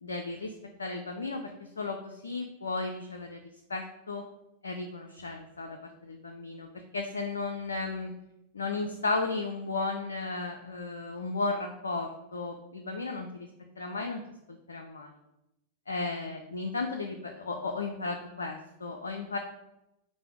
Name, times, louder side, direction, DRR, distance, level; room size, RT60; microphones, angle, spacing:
voice 1, 0.0-3.4 3.7-4.2 4.6-8.1 8.5-13.5 13.8-14.2 14.5-15.1 15.9-19.4, left 3 dB, 75° left, 4 dB, 0.3 m, -34 dB
4.9 x 2.0 x 4.5 m, 0.89 s
figure-of-eight pair, 90°, 0 cm